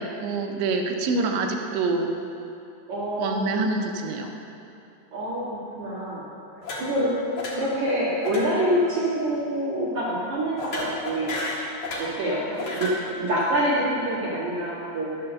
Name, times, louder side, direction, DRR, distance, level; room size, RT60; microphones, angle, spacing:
voice 1, 0.0-2.1 3.2-4.3, right 3 dB, 75° right, 3 dB, 3.0 m, -26 dB
voice 2, 2.9-3.7 5.1-11.4 11.9-15.3, right 1 dB, 50° right, -9 dB, 2.5 m, -26 dB
sound 1, 6.6-7.1 7.4-7.8 8.2-8.5 8.7-9.0 10.6-12.2 12.5-13.0, left 2 dB, 75° left, 1.5 m, -33 dB
11.5 x 7.0 x 6.8 m, 2.7 s
omnidirectional pair, 5.6 m